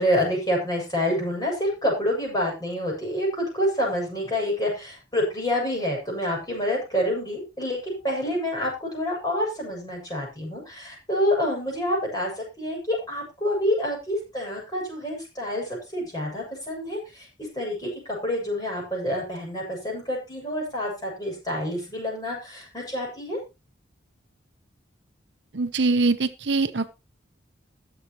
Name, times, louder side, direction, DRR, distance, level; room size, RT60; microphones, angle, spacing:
voice 1, 0.0-17.3 17.6-23.4, equal, 20° left, -2 dB, 7.2 m, -27 dB
voice 2, 25.5-26.9, right 3 dB, 65° right, 11 dB, 0.8 m, -23 dB
21.0 x 7.3 x 3.1 m, 0.27 s
head